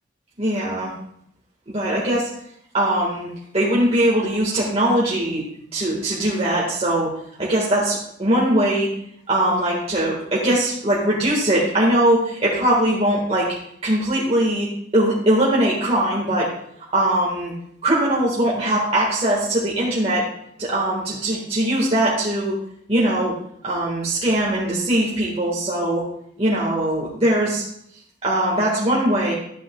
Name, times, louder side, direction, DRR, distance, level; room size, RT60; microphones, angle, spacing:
voice 1, 0.4-0.9 1.7-2.3 2.7-3.3 3.5-5.4 5.7-7.1 7.4-8.9 9.3-13.5 13.8-14.7 14.9-16.5 16.9-17.5 17.8-20.2 20.6-22.5 22.9-23.4 23.6-26.0 26.4-27.6 28.2-29.3, right 1 dB, 35° right, -6 dB, 1.7 m, -20 dB
12.0 x 9.0 x 2.3 m, 0.71 s
head